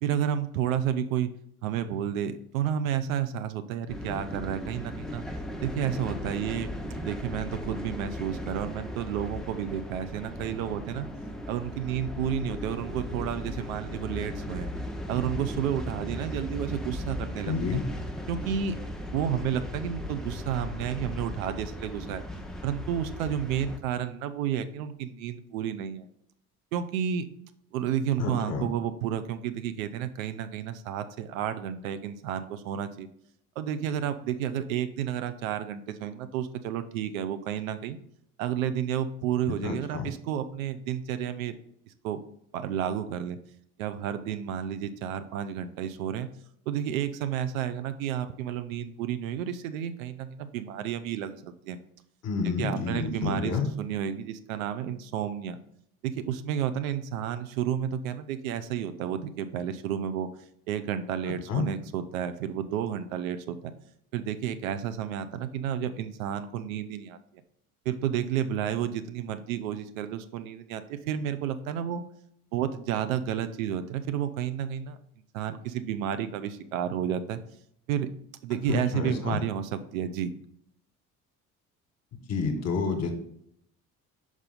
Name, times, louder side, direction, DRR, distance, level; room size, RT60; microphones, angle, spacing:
voice 1, 0.0-1.3 1.6-5.3 5.6-6.7 7.0-11.1 11.5-14.7 15.1-17.8 18.3-18.8 19.1-22.2 22.6-26.1 26.7-27.3 27.7-33.1 33.6-38.0 38.4-41.5 42.0-42.2 42.5-43.4 43.8-46.3 46.7-51.8 52.4-55.6 56.0-60.3 60.7-63.7 64.1-67.2 67.9-72.0 72.5-75.0 75.3-77.4 77.9-78.1 78.4-80.4, right 9 dB, 70° right, 11 dB, 0.6 m, -31 dB
sound 1, 3.9-23.8, left 1 dB, ahead, 0.6 m, -37 dB
voice 2, 17.5-17.9 28.2-28.7 39.6-40.1 52.2-53.7 61.5-61.7 78.7-79.4 82.3-83.1, left 5 dB, 35° left, 5 dB, 1.3 m, -29 dB
5.4 x 4.7 x 3.8 m, 0.71 s
figure-of-eight pair, 55°, 43 cm